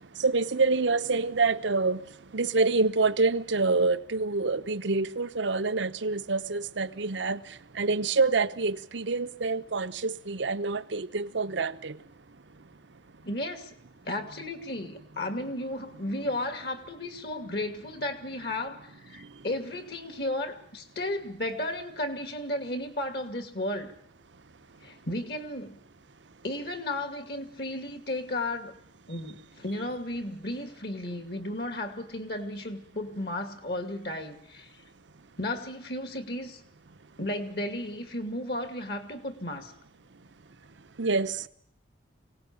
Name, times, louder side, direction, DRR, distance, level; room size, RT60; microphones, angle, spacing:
voice 1, 0.2-2.0 2.3-7.4 7.7-12.0 41.0-41.4, right 3 dB, 80° right, 0.9 m, -26 dB
voice 2, 13.2-13.7 14.0-23.9 24.8-25.8 26.4-28.7 29.1-34.7 35.4-36.6 37.2-39.7, left 1 dB, 60° left, 2.4 m, -34 dB
23.5 x 17.5 x 8.5 m
head